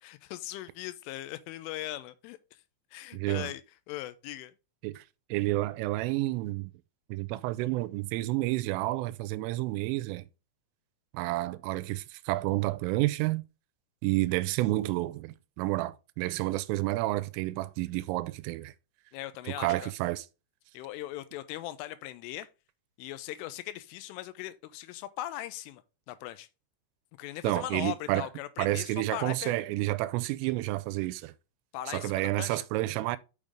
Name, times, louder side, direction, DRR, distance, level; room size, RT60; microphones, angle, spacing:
voice 1, 0.0-2.4 2.9-3.6 3.9-4.5 19.1-19.9 20.7-22.5 23.0-25.8 26.1-26.5 27.2-29.5 31.7-32.6, left 14 dB, 80° left, 3.1 m, -39 dB
voice 2, 3.1-3.5 4.8-5.0 5.3-6.7 7.1-10.3 11.1-13.4 14.0-18.7 19.6-20.3 27.4-28.3 28.6-31.3 31.9-33.2, right 18 dB, 85° right, 3.1 m, -30 dB
6.8 x 6.4 x 3.5 m
omnidirectional pair, 5.8 m